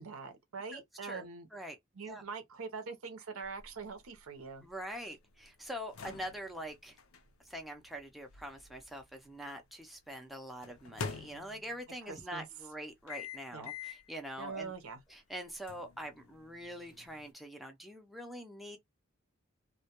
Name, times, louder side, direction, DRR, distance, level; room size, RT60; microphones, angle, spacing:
voice 1, 0.0-1.5 1.9-4.6 12.0-12.5 13.5-13.7 14.4-15.0, right 5 dB, 90° right, 0.7 m, -43 dB
voice 2, 0.7-1.3 1.5-1.8 2.0-2.2 4.6-7.0 7.4-14.7 15.1-18.8, equal, ahead, 0.4 m, -44 dB
sound 1, 3.4-9.5 10.6-12.0 13.1-14.1 14.6-14.7 15.7-17.3, left 5 dB, 75° left, 0.5 m, -47 dB
2.1 x 2.1 x 2.8 m
head